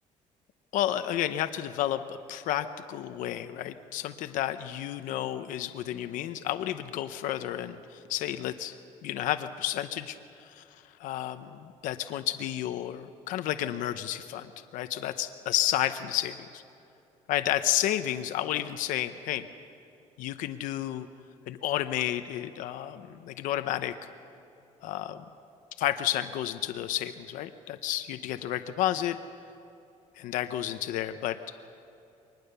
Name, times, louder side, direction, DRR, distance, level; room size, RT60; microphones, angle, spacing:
voice 1, 0.7-8.7 9.0-10.6 11.0-16.6 17.3-19.5 20.2-21.1 21.5-23.9 24.8-25.2 25.8-29.2 30.2-31.4, left 12 dB, 80° left, 9 dB, 0.9 m, -31 dB
23.5 x 20.0 x 6.9 m, 2.8 s
cardioid pair, 165°, 13 cm